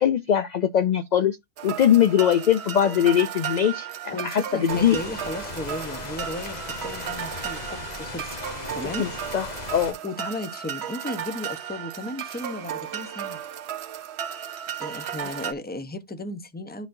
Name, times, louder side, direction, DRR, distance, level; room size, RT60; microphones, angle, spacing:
voice 1, 0.0-1.4 1.6-5.0 9.0-10.0, left 9 dB, 60° left, 0.4 m, -21 dB
sound 1, 1.6-15.5, right 9 dB, 70° right, 0.9 m, -35 dB
voice 2, 4.1-8.4 8.7-9.0 10.0-13.4 14.8-16.9, left 1 dB, 10° left, 0.6 m, -35 dB
sound 2, 4.7-9.9, left 3 dB, 40° left, 0.9 m, -37 dB
12.0 x 4.1 x 2.6 m
omnidirectional pair, 1.2 m